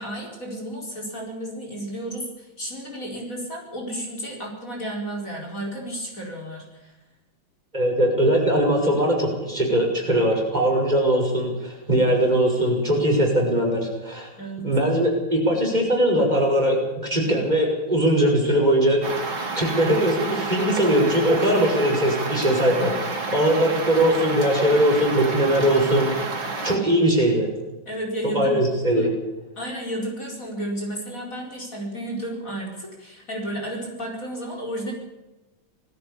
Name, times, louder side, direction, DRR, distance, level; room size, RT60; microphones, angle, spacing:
voice 1, 0.0-6.9 14.4-14.7 27.9-28.6 28.9-29.1 29.6-34.9, right 1 dB, 40° left, 0 dB, 5.1 m, -32 dB
voice 2, 7.7-14.3 14.6-19.0 19.4-27.5 28.2-29.1, right 1 dB, 20° right, 0 dB, 6.0 m, -21 dB
sound 1, 19.0-26.8, right 3 dB, 75° right, 3.7 m, -30 dB
19.5 x 15.5 x 8.6 m, 1.0 s
omnidirectional pair, 2.2 m